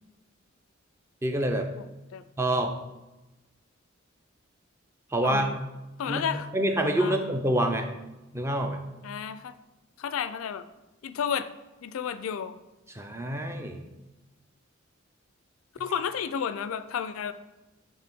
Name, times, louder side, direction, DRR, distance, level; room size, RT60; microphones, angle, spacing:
voice 1, 1.2-1.7 2.4-2.7 5.1-5.5 6.1-6.2 6.5-7.9 8.3-8.8 12.9-13.8, right 1 dB, 15° right, 5 dB, 0.4 m, -26 dB
voice 2, 5.2-5.5 6.0-6.5 7.0-7.2 9.0-9.5 10.0-10.6 11.0-11.5 11.8-12.6 15.8-17.3, left 7 dB, 85° left, 12 dB, 0.4 m, -31 dB
8.4 x 3.3 x 3.5 m, 1.1 s
head